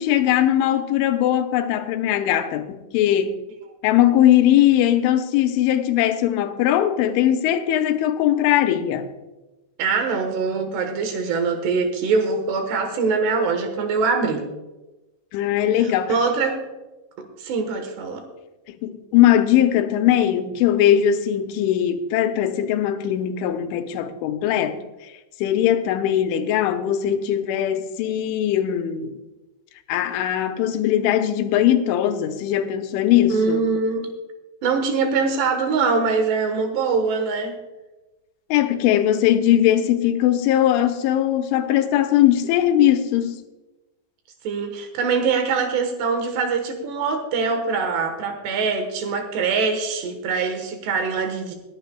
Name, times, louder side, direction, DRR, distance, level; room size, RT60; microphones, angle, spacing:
voice 1, 0.0-3.3 3.8-9.1 15.3-16.2 18.7-24.8 25.4-29.1 29.9-33.6 38.5-43.4, left 11 dB, 85° left, 3.2 m, -20 dB
voice 2, 9.8-14.5 15.7-16.6 17.2-18.2 33.3-34.1 34.6-37.6 44.4-51.6, right 4 dB, 70° right, 3.2 m, -23 dB
21.0 x 11.5 x 2.3 m
omnidirectional pair, 5.4 m